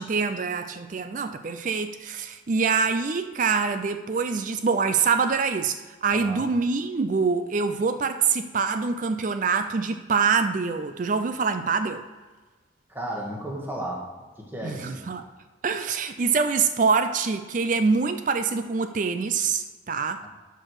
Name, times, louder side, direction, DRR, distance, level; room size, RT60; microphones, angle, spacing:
voice 1, 0.0-12.0 14.6-15.3 15.6-20.2, right 5 dB, 40° right, 9 dB, 0.4 m, -25 dB
voice 2, 6.1-6.5 12.9-14.0 14.4-15.1 20.2-20.3, right 1 dB, 10° right, -2 dB, 1.6 m, -34 dB
12.5 x 4.5 x 4.8 m, 1.3 s
head